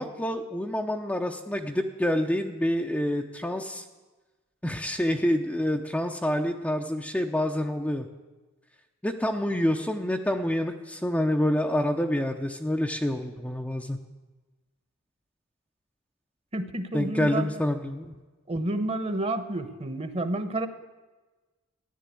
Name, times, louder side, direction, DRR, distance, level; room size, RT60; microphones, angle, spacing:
voice 1, 0.0-3.8 4.6-8.1 9.0-14.0 16.9-18.1, left 1 dB, 5° left, 3 dB, 0.7 m, -27 dB
voice 2, 16.5-17.6 18.5-20.7, right 1 dB, 30° right, 9 dB, 1.1 m, -30 dB
14.0 x 10.5 x 8.4 m, 1.2 s
head